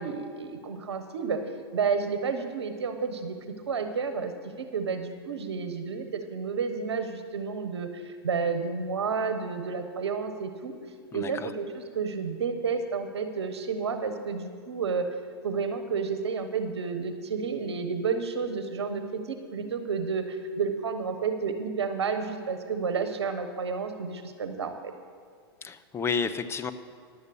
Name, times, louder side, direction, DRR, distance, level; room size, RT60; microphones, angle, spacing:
voice 1, 0.0-1.4 1.7-3.4 3.7-10.7 11.1-15.1 15.4-24.9, right 5 dB, 85° right, 7 dB, 1.0 m, -31 dB
voice 2, 11.1-11.5 25.6-26.7, left 5 dB, 20° left, 10 dB, 0.6 m, -31 dB
11.0 x 8.1 x 6.9 m, 2.2 s
hypercardioid pair, 110°, 14 cm